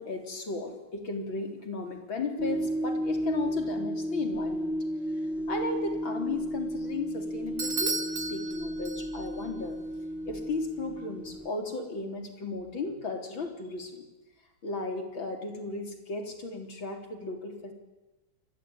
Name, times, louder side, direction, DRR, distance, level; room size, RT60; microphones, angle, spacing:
voice 1, 0.0-4.8 5.5-8.0 8.3-9.8 10.3-14.1 14.6-17.7, left 3 dB, 75° left, 4 dB, 4.5 m, -35 dB
sound 1, 2.4-11.5, equal, ahead, 1.2 m, -33 dB
Bell / Doorbell, 7.6-9.4, right 3 dB, 45° right, 2.3 m, -34 dB
28.5 x 21.5 x 9.5 m, 1.1 s
omnidirectional pair, 2.1 m